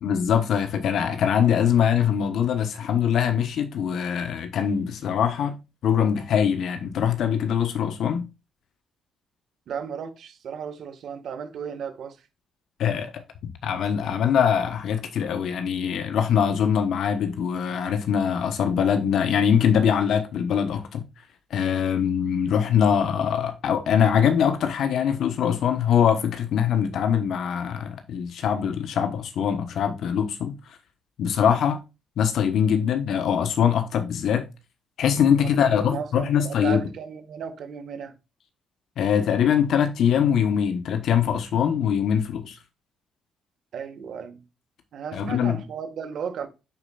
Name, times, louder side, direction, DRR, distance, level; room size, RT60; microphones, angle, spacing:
voice 1, 0.0-5.6 5.8-8.3 12.8-21.1 21.5-30.6 31.2-31.8 32.2-34.5 35.0-36.8 39.0-42.6 45.1-45.6, left 8 dB, 70° left, 1.1 m, -23 dB
voice 2, 9.7-12.2 35.3-38.2 43.7-44.4 44.9-46.5, right 7 dB, 65° right, 1.6 m, -35 dB
10.5 x 4.3 x 2.4 m
cardioid pair, 110°, 0 cm